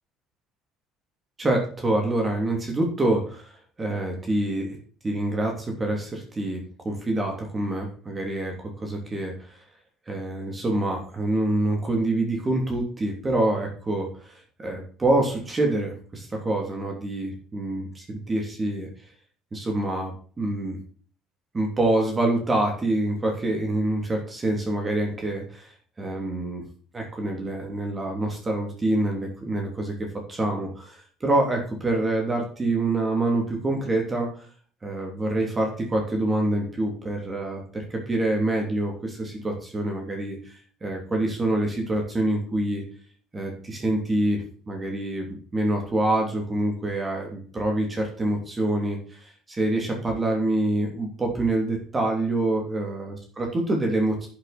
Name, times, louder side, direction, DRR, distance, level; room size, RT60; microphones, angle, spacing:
voice 1, 1.4-3.5 3.8-4.8 5.0-9.6 10.1-18.9 19.5-20.8 21.5-25.7 26.0-26.6 26.9-29.9 30.3-34.4 34.8-42.8 43.3-54.3, right 1 dB, 20° right, 1 dB, 3.1 m, -26 dB
11.0 x 7.6 x 4.4 m, 0.43 s
cardioid pair, 120°, 0 cm